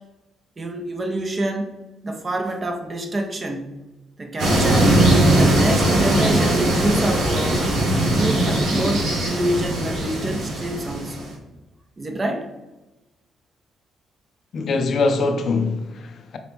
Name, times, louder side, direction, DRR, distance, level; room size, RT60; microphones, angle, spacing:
voice 1, 0.6-3.7 4.2-5.0 5.3-7.6 8.1-11.3 12.0-12.5, right 1 dB, 30° right, 0.6 m, -26 dB
sound 1, 4.4-11.3, right 1 dB, 85° right, 1.1 m, -19 dB
voice 2, 14.5-16.4, left 3 dB, 60° left, 0.4 m, -23 dB
3.9 x 2.9 x 3.5 m
cardioid pair, 90°, 0 cm